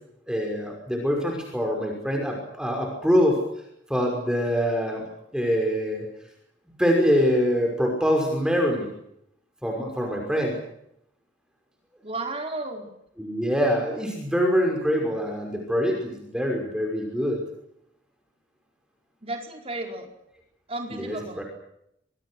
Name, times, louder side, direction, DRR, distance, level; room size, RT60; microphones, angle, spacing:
voice 1, 0.3-3.4 3.9-5.1 5.3-6.0 6.8-8.9 9.6-10.5 13.2-17.4 20.9-21.4, equal, 5° right, 1 dB, 5.7 m, -24 dB
voice 2, 12.0-12.8 19.2-20.1 20.7-21.4, right 2 dB, 30° right, 3 dB, 4.7 m, -33 dB
28.0 x 23.5 x 6.3 m, 0.76 s
head